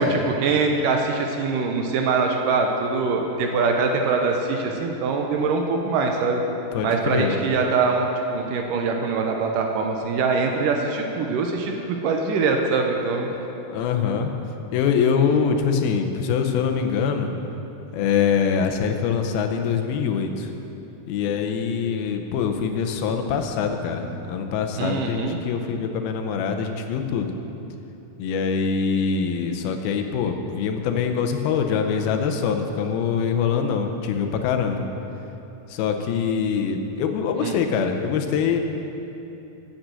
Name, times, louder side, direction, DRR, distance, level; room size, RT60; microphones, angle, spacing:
voice 1, 0.0-6.4 6.8-13.3 24.8-25.4 37.4-37.6, right 4 dB, 75° right, 3 dB, 2.2 m, -23 dB
voice 2, 6.7-7.4 13.3-14.3 14.7-17.3 17.9-20.5 21.1-27.3 28.2-34.9 35.7-38.6, left 6 dB, 85° left, 5 dB, 2.7 m, -24 dB
8.9 x 8.3 x 7.6 m, 3.0 s
omnidirectional pair, 4.2 m